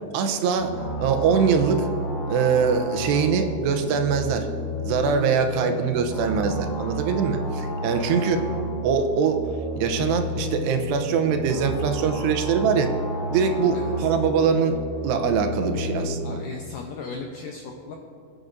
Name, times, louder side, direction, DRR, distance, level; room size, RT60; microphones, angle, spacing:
voice 1, 0.1-0.7 1.0-1.9 2.3-4.5 4.9-8.4 8.8-9.4 9.8-12.9 13.3-14.8 15.0-16.4, right 6 dB, 85° right, 6 dB, 3.0 m, -23 dB
sound 1, 0.6-16.2, equal, 40° left, 2.5 m, -31 dB
voice 2, 16.2-17.9, left 4 dB, 80° left, 1 dB, 1.9 m, -37 dB
20.5 x 9.3 x 2.6 m, 2.6 s
omnidirectional pair, 4.7 m